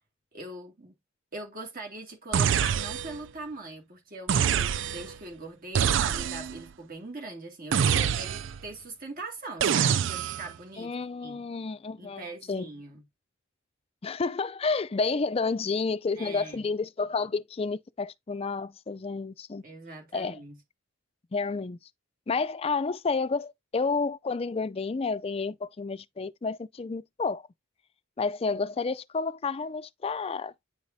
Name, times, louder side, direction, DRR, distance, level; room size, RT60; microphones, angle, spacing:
voice 1, 0.3-1.0 1.3-10.9 11.2-11.4 12.0-13.0 16.2-16.7 19.6-20.6, right 2 dB, 45° right, 2.2 m, -41 dB
sound 1, 2.3-3.3 4.3-5.2 5.7-6.6 7.7-8.6 9.6-10.5, right 8 dB, 65° right, 0.4 m, -26 dB
voice 2, 10.8-12.7 14.0-19.6 20.1-20.4 21.3-21.8 22.3-27.4 28.2-30.5, left 4 dB, 30° left, 0.4 m, -30 dB
9.6 x 4.8 x 2.7 m
head